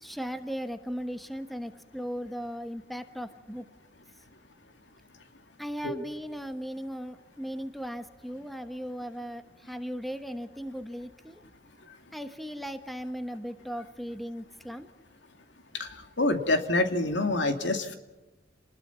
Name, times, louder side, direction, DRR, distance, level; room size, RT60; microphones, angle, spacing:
voice 1, 0.0-3.6 5.6-11.4 12.1-14.9, equal, ahead, 8 dB, 1.1 m, -37 dB
voice 2, 16.2-18.0, left 2 dB, 70° left, 6 dB, 2.5 m, -26 dB
30.0 x 20.5 x 5.7 m, 1.1 s
head